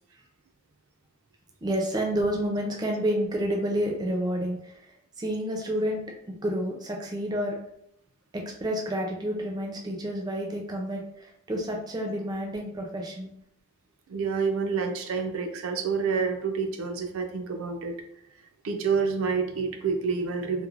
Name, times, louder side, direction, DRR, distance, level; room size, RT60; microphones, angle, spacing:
voice 1, 1.6-4.8 5.2-6.0 6.4-7.6 8.3-13.3, equal, 20° right, 0 dB, 0.4 m, -29 dB
voice 2, 14.1-18.0 18.6-20.7, right 5 dB, 85° right, 4 dB, 0.4 m, -28 dB
3.1 x 2.0 x 2.4 m, 0.73 s
head